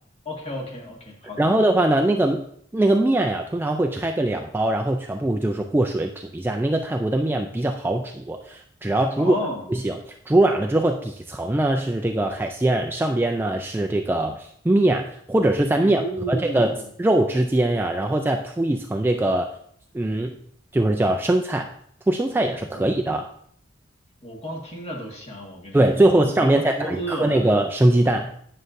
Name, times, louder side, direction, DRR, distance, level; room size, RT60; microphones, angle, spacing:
voice 1, 0.2-1.5 9.2-9.7 15.8-16.9 24.2-27.5, right 1 dB, 30° left, -1 dB, 1.7 m, -32 dB
voice 2, 1.4-2.4 2.7-9.4 9.7-10.0 10.3-16.0 16.3-19.5 19.9-20.4 20.7-21.7 22.1-23.3 25.7-28.4, right 1 dB, 10° right, 3 dB, 0.3 m, -21 dB
9.4 x 6.4 x 2.6 m, 0.65 s
head